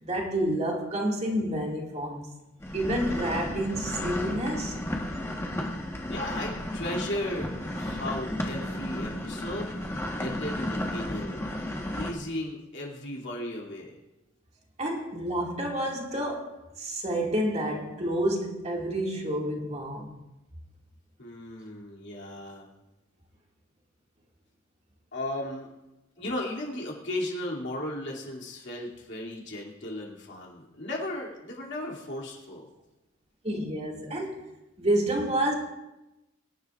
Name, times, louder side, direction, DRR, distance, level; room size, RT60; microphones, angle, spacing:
voice 1, 0.0-2.3 2.7-4.8 14.8-20.2 33.4-35.5, right 1 dB, 30° right, 2.1 m, -29 dB
sound 1, 2.6-12.1, left 1 dB, 15° left, 1.2 m, -33 dB
voice 2, 6.1-9.7 10.2-11.5 11.9-13.9 21.2-22.7 25.1-25.7 26.2-32.7, left 1 dB, 55° left, 2.6 m, -35 dB
24.0 x 11.5 x 2.4 m
head